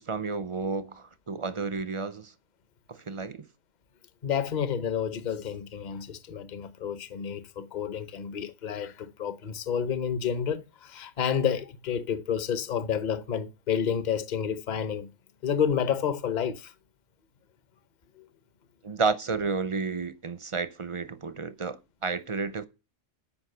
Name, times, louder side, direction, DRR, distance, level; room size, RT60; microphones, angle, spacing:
voice 1, 0.0-2.3 2.9-3.5 18.8-22.7, right 4 dB, 35° right, 0.5 m, -31 dB
voice 2, 4.2-15.1 15.4-16.7 18.2-18.3, left 8 dB, 40° left, 0.9 m, -30 dB
14.0 x 5.5 x 6.6 m
omnidirectional pair, 1.3 m